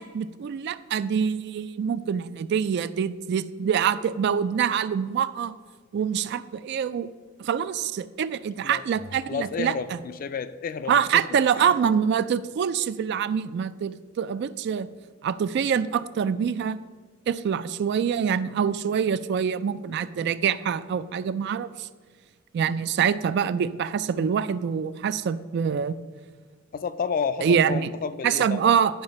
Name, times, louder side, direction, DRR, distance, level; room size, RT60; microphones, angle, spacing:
voice 1, 0.0-5.5 5.9-7.1 7.4-10.0 10.9-14.9 15.2-16.8 17.3-21.9 22.5-25.9 27.4-27.9 28.2-29.0, right 7 dB, 55° right, 15 dB, 0.3 m, -25 dB
voice 2, 9.3-11.7 26.7-28.7, left 5 dB, 45° left, 13 dB, 0.4 m, -31 dB
10.5 x 4.8 x 5.3 m, 1.5 s
head